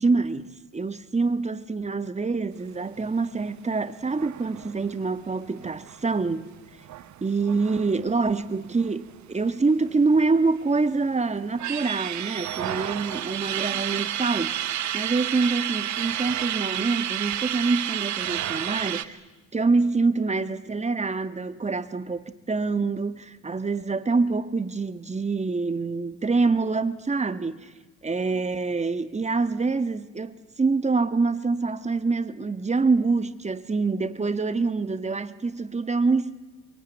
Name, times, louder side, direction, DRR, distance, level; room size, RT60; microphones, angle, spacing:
voice 1, 0.0-6.5 7.2-19.2 19.5-27.7 28.0-36.3, right 4 dB, 20° right, 1.5 m, -26 dB
sound 1, 4.1-9.2 9.5-9.6 9.9-10.8 11.3-19.0, right 12 dB, 70° right, 1.1 m, -31 dB
24.0 x 23.0 x 9.3 m
cardioid pair, 90°, 30 cm